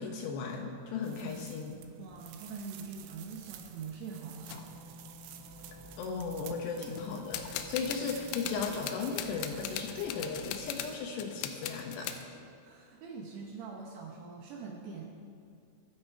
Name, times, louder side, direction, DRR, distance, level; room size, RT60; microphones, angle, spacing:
voice 1, 0.0-1.8 6.0-12.1, left 5 dB, 75° left, 2 dB, 2.8 m, -36 dB
sound 1, 1.0-11.0, right 10 dB, 90° right, 3.1 m, -51 dB
voice 2, 2.0-4.8 6.8-6.9 12.6-15.0, right 5 dB, 70° right, -1 dB, 2.8 m, -44 dB
sound 2, 3.3-3.7 4.5-4.6 5.3-5.4 5.6-6.1 6.9-12.2, left 10 dB, 90° left, 3.3 m, -40 dB
sound 3, 4.1-10.3, equal, 50° right, 4.5 m, -52 dB
23.5 x 8.1 x 4.8 m, 2.3 s
omnidirectional pair, 5.5 m